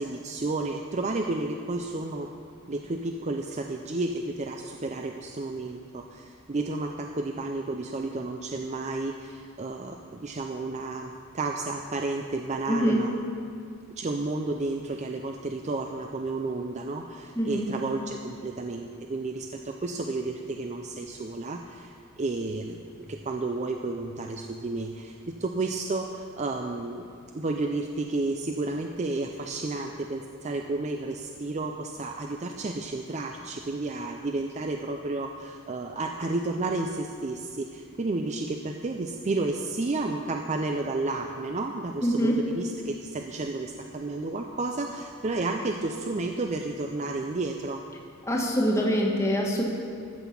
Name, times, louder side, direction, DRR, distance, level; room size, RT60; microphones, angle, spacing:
voice 1, 0.0-2.3 2.7-13.1 14.0-27.1 27.3-47.8, right 2 dB, 30° right, 3 dB, 0.5 m, -32 dB
voice 2, 12.7-13.0 17.4-17.7 42.0-42.4 48.3-49.6, equal, 15° left, -1 dB, 1.4 m, -24 dB
14.0 x 5.8 x 7.2 m, 2.3 s
head